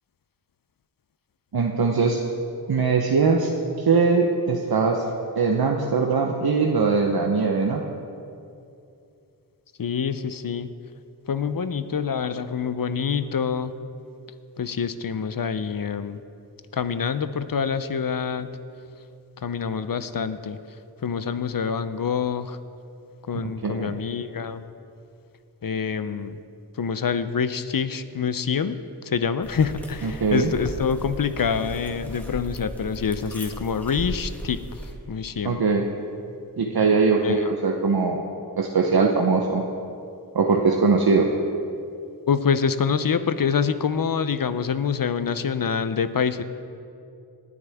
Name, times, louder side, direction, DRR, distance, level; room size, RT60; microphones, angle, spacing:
voice 1, 1.5-2.2 2.7-3.5 3.8-5.0 5.4-7.9 23.4-24.0 30.0-30.5 35.4-35.8 36.6-38.2 38.6-39.6 40.3-41.3, right 4 dB, 60° right, 1 dB, 0.9 m, -21 dB
voice 2, 9.8-10.7 11.3-13.7 14.6-16.2 16.7-18.5 19.4-20.6 21.0-22.6 23.3-24.6 25.6-26.4 26.7-34.6 35.1-35.6 37.2-37.5 42.3-46.4, left 6 dB, 55° left, 12 dB, 0.6 m, -26 dB
sound 1, 29.4-34.9, equal, 5° left, 1.8 m, -37 dB
19.0 x 9.6 x 3.5 m, 2.6 s
wide cardioid pair, 50°, 41 cm